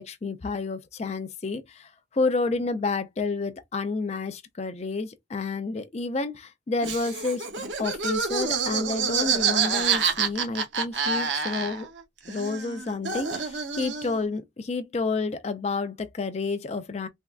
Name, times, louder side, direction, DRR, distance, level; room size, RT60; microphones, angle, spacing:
voice 1, 0.0-11.9 12.3-17.1, left 3 dB, 35° left, 0.4 m, -30 dB
Laughter, 6.8-12.0 12.3-14.2, right 6 dB, 75° right, 0.8 m, -27 dB
3.5 x 2.2 x 2.3 m
head